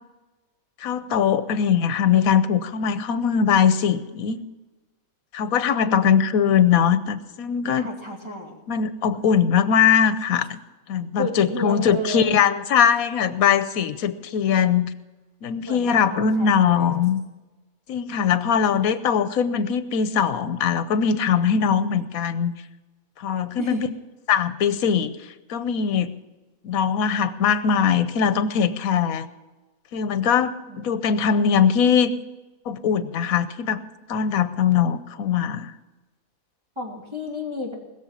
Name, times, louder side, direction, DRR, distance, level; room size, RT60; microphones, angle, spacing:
voice 1, 0.8-4.4 5.3-7.9 8.7-10.6 10.9-14.9 15.4-17.2 17.9-22.5 23.2-23.9 24.3-25.1 25.5-26.1 26.6-29.3 29.9-32.1 32.7-33.8 34.1-35.7, left 7 dB, 85° left, 13 dB, 1.2 m, -21 dB
voice 2, 5.8-6.3 7.7-8.6 11.2-12.4 15.6-17.0 23.6-23.9 30.7-30.9 36.8-37.7, equal, 20° right, -1 dB, 2.8 m, -32 dB
20.5 x 7.1 x 7.3 m, 1.1 s
omnidirectional pair, 1.4 m